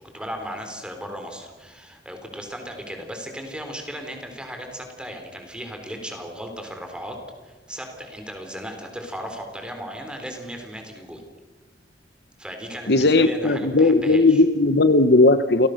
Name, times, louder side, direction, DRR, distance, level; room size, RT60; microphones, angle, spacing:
voice 1, 0.1-7.2 7.4-11.2 12.4-14.4, equal, 5° right, 4 dB, 4.0 m, -36 dB
voice 2, 12.9-15.7, left 2 dB, 65° left, 12 dB, 1.1 m, -17 dB
29.5 x 17.5 x 6.6 m, 1.3 s
head